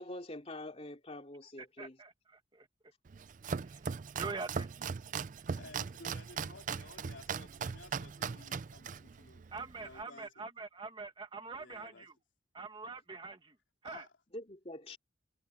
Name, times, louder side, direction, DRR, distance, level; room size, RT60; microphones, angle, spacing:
voice 1, 0.0-2.0 14.3-15.0, left 1 dB, 30° left, 3.0 m, -45 dB
voice 2, 1.8-2.1 2.5-2.7 3.6-3.8 4.1-4.7 9.5-12.1 12.5-13.5 13.8-14.0, right 4 dB, 25° right, 1.4 m, -44 dB
Domestic sounds home sounds, 3.1-10.0, right 6 dB, 40° right, 0.4 m, -39 dB
voice 3, 5.5-9.4 9.7-10.5 11.6-12.1 13.8-14.1, left 3 dB, 70° left, 3.7 m, -55 dB
head